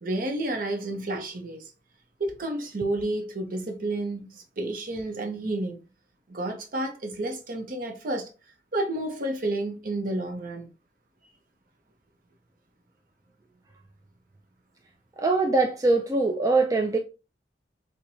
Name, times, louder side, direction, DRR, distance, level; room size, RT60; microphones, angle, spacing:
voice 1, 0.0-1.7 2.2-5.8 6.3-8.3 8.7-10.7, right 1 dB, 50° right, 0.7 m, -30 dB
voice 2, 15.2-17.0, right 3 dB, 20° right, 0.3 m, -22 dB
4.4 x 2.2 x 2.6 m
head